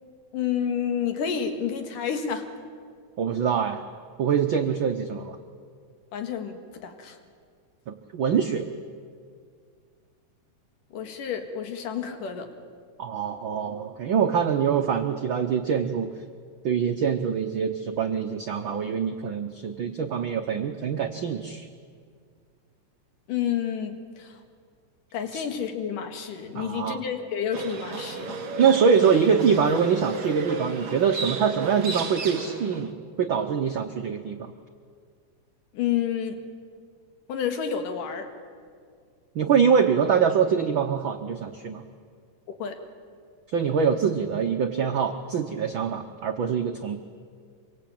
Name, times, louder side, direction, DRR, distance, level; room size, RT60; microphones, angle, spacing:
voice 1, 0.3-2.5 6.1-7.2 10.9-12.5 23.3-24.4 25.1-28.4 35.7-36.4 37.3-38.3 42.5-42.8, left 8 dB, 85° left, 6 dB, 3.5 m, -30 dB
voice 2, 3.2-3.8 4.2-5.4 7.9-8.7 13.0-16.1 16.6-21.7 25.3-25.4 26.5-27.0 28.6-32.9 33.2-34.5 39.3-41.8 43.5-47.0, right 6 dB, 85° right, 5 dB, 1.0 m, -24 dB
Livestock farm animals working animals, 27.5-32.9, right 3 dB, 50° right, 2.6 m, -33 dB
25.5 x 23.5 x 8.6 m, 2.1 s
omnidirectional pair, 3.7 m